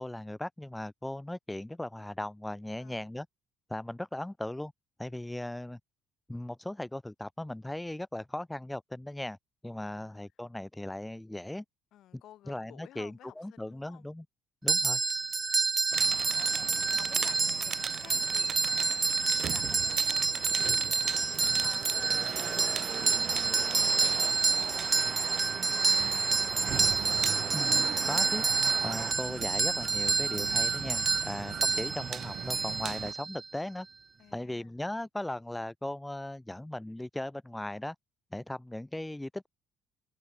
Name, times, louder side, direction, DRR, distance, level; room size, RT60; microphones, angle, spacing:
voice 1, 0.0-3.3 3.7-4.7 5.0-5.8 6.3-9.4 9.6-11.6 12.1-12.2 12.5-14.2 14.6-15.0 27.5-28.5 28.8-33.9 34.3-37.9 38.3-39.5, left 1 dB, 5° left, 1.5 m, -38 dB
voice 2, 2.8-3.1 9.9-10.2 11.9-14.1 16.3-21.3 21.6-26.3 34.2-34.7, left 13 dB, 65° left, 2.9 m, -55 dB
sound 1, 14.7-33.5, right 4 dB, 25° right, 0.4 m, -28 dB
sound 2, 15.9-33.1, right 9 dB, 50° right, 1.0 m, -39 dB
open air
cardioid pair, 120°, 0 cm